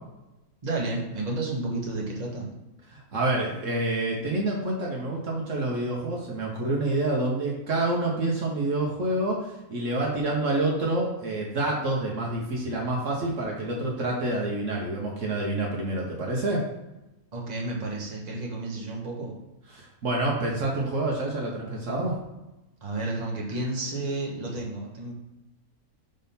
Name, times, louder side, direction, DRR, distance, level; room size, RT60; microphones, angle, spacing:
voice 1, 0.6-2.4 17.3-19.3 22.8-25.1, right 2 dB, 30° right, -3 dB, 1.4 m, -31 dB
voice 2, 2.9-16.7 19.7-22.2, right 2 dB, 60° right, -2 dB, 1.4 m, -27 dB
5.1 x 3.7 x 5.6 m, 0.98 s
omnidirectional pair, 1.5 m